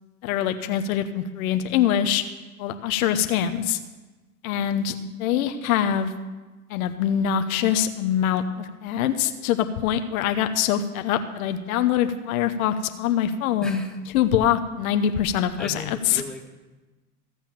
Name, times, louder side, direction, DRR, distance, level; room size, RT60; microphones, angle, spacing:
voice 1, 0.2-2.2 2.6-3.8 4.4-6.1 6.7-13.8 14.1-16.2, left 9 dB, 65° left, 8 dB, 1.0 m, -24 dB
voice 2, 13.6-14.0 15.6-16.6, left 2 dB, ahead, 0 dB, 1.9 m, -37 dB
15.5 x 7.3 x 7.2 m, 1.2 s
hypercardioid pair, 85°, 46 cm